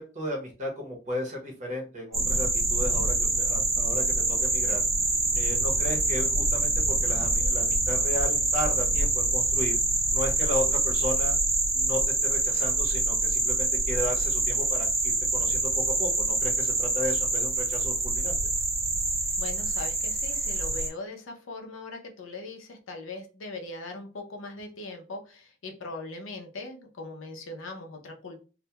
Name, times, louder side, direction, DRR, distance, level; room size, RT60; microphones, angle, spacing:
voice 1, 0.0-4.8 5.3-9.8 10.1-11.4 11.7-18.4, left 1 dB, 35° right, 0 dB, 0.7 m, -34 dB
sound 1, 2.1-20.9, right 2 dB, 15° right, 0.3 m, -26 dB
voice 2, 19.4-28.4, left 2 dB, 80° left, 3 dB, 0.6 m, -40 dB
2.2 x 2.1 x 2.8 m, 0.34 s
head